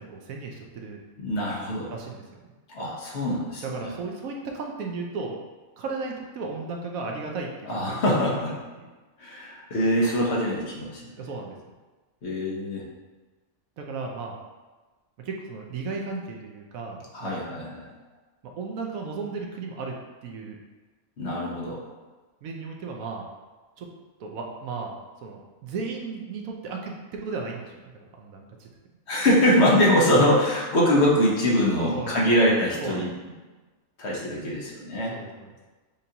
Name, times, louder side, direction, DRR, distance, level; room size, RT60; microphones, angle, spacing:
voice 1, 0.0-1.0 1.9-2.2 3.6-5.3 5.8-8.4 11.2-11.5 13.8-14.4 15.2-17.4 18.6-19.9 20.2-20.6 22.4-23.3 23.8-23.9 24.2-25.0 25.2-28.7 31.8-32.4 32.8-33.1 35.1-35.5, right 4 dB, 80° right, 0 dB, 1.1 m, -35 dB
voice 2, 1.2-1.9 2.7-3.9 7.6-8.5 9.2-11.0 12.2-12.8 17.1-17.9 21.2-21.8 29.1-33.1 34.0-35.2, equal, 55° left, -4 dB, 1.2 m, -23 dB
6.7 x 2.6 x 2.8 m, 1.3 s
omnidirectional pair, 1.5 m